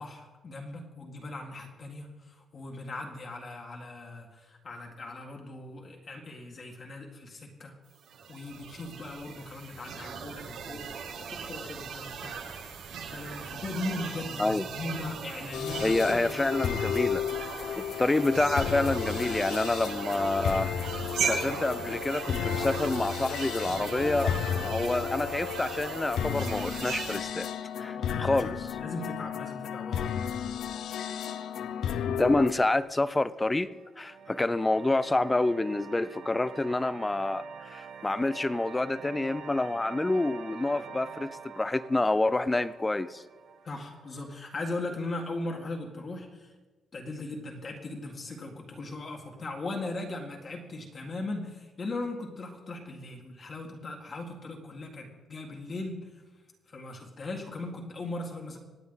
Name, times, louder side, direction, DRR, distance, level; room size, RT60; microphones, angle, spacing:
voice 1, 0.0-7.8 8.3-12.4 12.8-16.6 28.0-30.1 43.6-46.5 46.9-56.1 56.7-58.6, left 2 dB, 30° left, 0 dB, 1.8 m, -39 dB
sound 1, 8.0-27.2, right 6 dB, 80° right, 2.1 m, -38 dB
sound 2, 15.5-32.5, left 8 dB, 65° left, 0.7 m, -33 dB
voice 2, 15.8-17.2 17.8-20.7 21.2-24.3 24.6-27.5 27.8-28.5 32.1-33.7 34.0-43.2, left 2 dB, 10° left, 16 dB, 0.4 m, -28 dB
sound 3, 33.5-44.6, right 6 dB, 60° right, 1.1 m, -45 dB
25.5 x 9.3 x 4.0 m, 1.2 s
cardioid pair, 175°, 0 cm